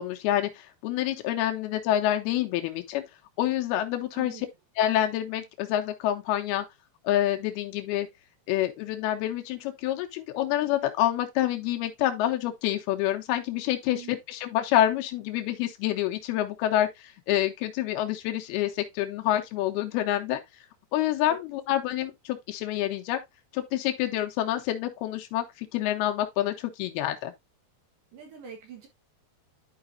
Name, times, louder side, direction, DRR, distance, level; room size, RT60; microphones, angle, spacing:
voice 1, 0.0-3.0 3.4-4.5 4.8-6.7 7.0-8.1 8.5-20.4 20.9-23.2 23.5-27.3, left 13 dB, 85° left, 2.8 m, -27 dB
voice 2, 4.1-4.4 13.9-14.2 21.3-21.4 28.1-28.9, right 7 dB, 65° right, 2.8 m, -44 dB
11.0 x 4.9 x 2.6 m
omnidirectional pair, 4.4 m